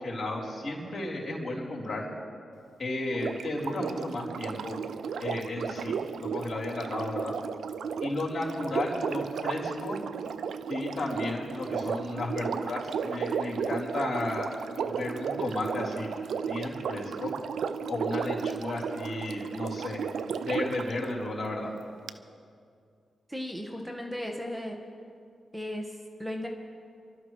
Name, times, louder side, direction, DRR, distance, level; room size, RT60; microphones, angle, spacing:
voice 1, 0.0-2.1 2.8-4.8 5.2-7.3 8.0-10.0 10.7-14.5 14.7-16.1 16.5-17.3 17.9-20.0 20.4-21.7, left 2 dB, 50° left, -3 dB, 4.0 m, -33 dB
Sink (filling or washing), 3.1-20.9 22.1-22.2, right 6 dB, 75° right, 0.4 m, -34 dB
voice 2, 23.3-24.8 25.5-26.5, left 1 dB, 10° right, 2 dB, 1.6 m, -36 dB
28.0 x 12.0 x 3.3 m, 2.3 s
supercardioid pair, 40°, 0 cm